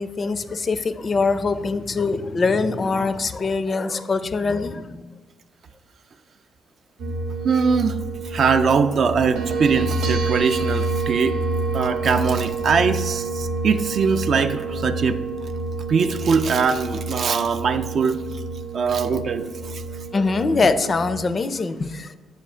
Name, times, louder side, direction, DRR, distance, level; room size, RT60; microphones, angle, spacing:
voice 1, 0.0-5.1 20.1-22.2, left 4 dB, 35° left, 11 dB, 0.4 m, -23 dB
sound 1, 7.0-21.2, right 3 dB, 80° right, 0.6 m, -28 dB
voice 2, 7.4-8.0 8.2-11.4 11.7-15.2 15.9-18.2 18.7-19.8, right 5 dB, 55° right, 8 dB, 0.3 m, -21 dB
7.1 x 2.4 x 5.4 m, 1.3 s
cardioid pair, 90°, 0 cm